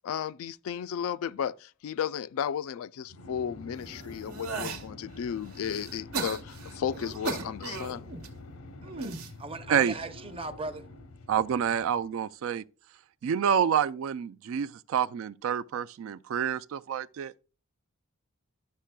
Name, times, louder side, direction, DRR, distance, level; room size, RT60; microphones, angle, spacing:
voice 1, 0.0-8.1, left 8 dB, 70° left, 0.3 m, -34 dB
sound 1, 3.1-12.0, left 2 dB, 85° left, 0.9 m, -47 dB
sound 2, 3.8-4.8 5.4-8.3 8.8-9.3 10.1-10.5, right 4 dB, 85° right, 1.1 m, -37 dB
voice 2, 8.8-9.1 9.4-10.8, right 2 dB, 25° right, 0.6 m, -38 dB
voice 3, 11.3-12.6 13.2-17.3, right 8 dB, 65° right, 0.3 m, -28 dB
11.5 x 6.5 x 2.2 m
head